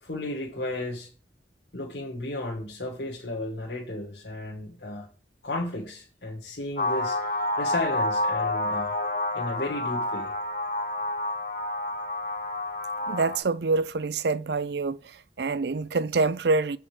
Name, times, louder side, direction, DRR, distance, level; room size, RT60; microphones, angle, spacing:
voice 1, 0.0-1.1 1.7-5.1 5.4-7.2 7.6-9.0 9.3-10.3, left 2 dB, 70° left, 2.2 m, -33 dB
sound 1, 6.8-13.4, left 2 dB, 50° left, 1.4 m, -29 dB
voice 2, 13.1-15.0 15.4-16.8, right 3 dB, 65° right, 0.5 m, -26 dB
8.1 x 5.8 x 5.3 m
head